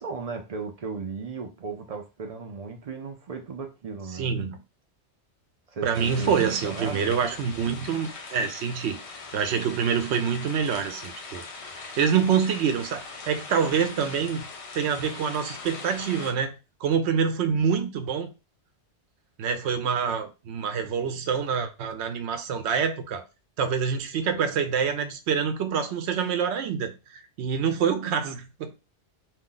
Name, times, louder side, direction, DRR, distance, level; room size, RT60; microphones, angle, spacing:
voice 1, 0.0-4.4 5.7-6.3 6.6-7.1, right 4 dB, 55° right, 0.4 m, -36 dB
voice 2, 4.1-4.6 5.8-9.0 9.3-11.4 11.8-14.5 14.7-16.5 16.8-18.3 19.4-23.2 23.6-28.7, right 7 dB, 80° right, 0.9 m, -26 dB
sound 1, 5.9-16.3, left 4 dB, 50° left, 0.4 m, -41 dB
2.7 x 2.2 x 3.7 m
omnidirectional pair, 1.1 m